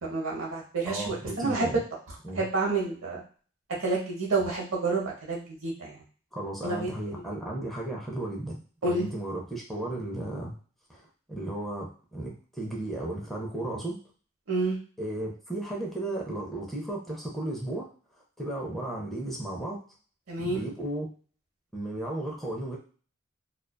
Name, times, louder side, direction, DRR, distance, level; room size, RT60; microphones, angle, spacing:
voice 1, 0.0-1.7 2.4-3.2 3.8-5.9 6.6-6.9 8.8-9.1 14.5-14.8 20.3-20.6, right 3 dB, 80° right, -2 dB, 0.8 m, -29 dB
voice 2, 0.8-1.8 2.2-2.4 6.3-10.6 10.9-14.0 15.0-17.9 18.2-19.8 20.4-21.1 21.7-22.8, right 1 dB, ahead, -3 dB, 0.5 m, -34 dB
2.4 x 2.3 x 2.2 m, 0.41 s
head